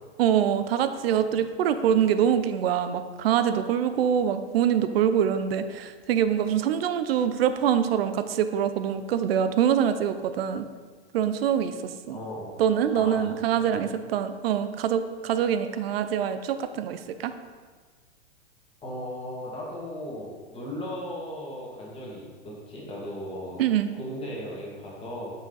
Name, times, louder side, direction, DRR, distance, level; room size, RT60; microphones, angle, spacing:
voice 1, 0.2-10.7 11.1-12.2 12.6-17.3 23.6-23.9, right 9 dB, 60° right, 10 dB, 0.6 m, -24 dB
voice 2, 12.1-12.6 12.9-13.2 13.5-13.8 18.8-23.6 23.9-25.3, left 1 dB, 15° left, -5 dB, 2.1 m, -37 dB
6.0 x 5.2 x 4.0 m, 1.5 s
hypercardioid pair, 120°, 34 cm